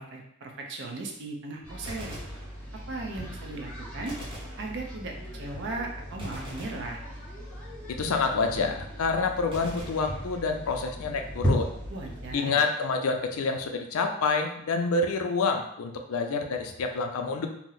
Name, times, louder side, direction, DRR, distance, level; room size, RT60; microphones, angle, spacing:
voice 1, 0.0-2.2 2.9-4.1 4.6-7.0 11.9-12.6, right 2 dB, 55° right, 1 dB, 0.5 m, -37 dB
sound 1, 1.6-12.3, equal, 5° left, 0.8 m, -36 dB
Gunshot gunfire, 1.8-3.1 4.1-5.3 6.2-7.6 9.5-10.9, right 1 dB, 25° right, 0.8 m, -45 dB
voice 2, 7.9-11.7 12.3-17.5, left 4 dB, 75° left, 4 dB, 0.4 m, -28 dB
2.8 x 2.0 x 3.8 m, 0.73 s
head